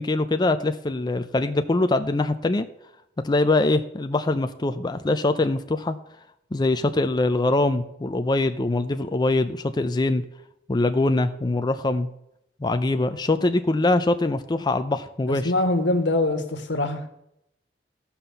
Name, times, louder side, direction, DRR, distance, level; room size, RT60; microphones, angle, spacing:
voice 1, 0.0-2.6 3.2-6.0 6.5-10.2 10.7-12.1 12.6-15.5, left 2 dB, 25° left, 8 dB, 0.5 m, -23 dB
voice 2, 15.3-17.1, left 2 dB, 85° left, 7 dB, 1.5 m, -23 dB
13.5 x 5.8 x 6.8 m, 0.79 s
head